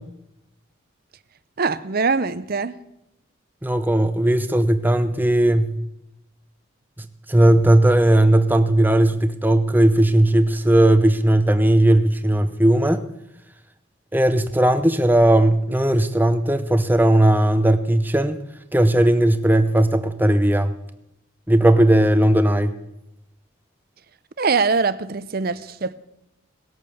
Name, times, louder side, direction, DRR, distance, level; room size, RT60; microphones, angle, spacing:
voice 1, 1.6-2.8 24.4-25.9, right 4 dB, 45° right, 0.6 m, -22 dB
voice 2, 3.6-5.8 7.3-13.0 14.1-18.4 18.7-20.7 21.5-22.8, right 1 dB, 10° right, 0.7 m, -17 dB
18.5 x 8.6 x 6.9 m
head